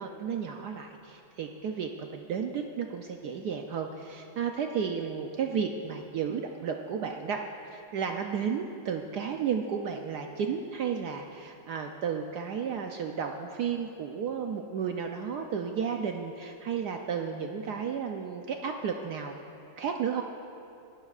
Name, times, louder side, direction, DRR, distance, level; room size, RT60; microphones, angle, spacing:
voice 1, 0.0-19.4 19.8-20.2, right 7 dB, 75° right, 3 dB, 0.9 m, -33 dB
24.0 x 12.5 x 2.4 m, 2.7 s
omnidirectional pair, 2.4 m